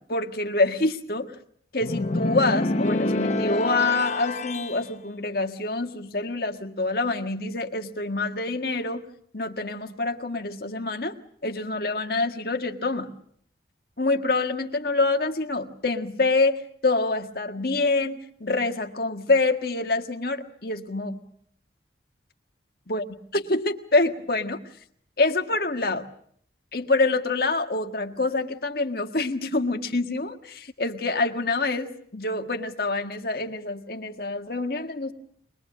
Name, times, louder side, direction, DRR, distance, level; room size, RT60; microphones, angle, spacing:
voice 1, 0.1-1.3 1.7-9.0 9.3-11.2 11.4-13.1 14.0-21.2 22.9-23.0 23.3-24.6 25.2-26.1 26.7-35.1, left 3 dB, 55° left, 5 dB, 1.6 m, -26 dB
sound 1, 1.8-4.8, left 2 dB, 40° left, 0.9 m, -26 dB
23.0 x 21.0 x 7.5 m, 0.64 s
head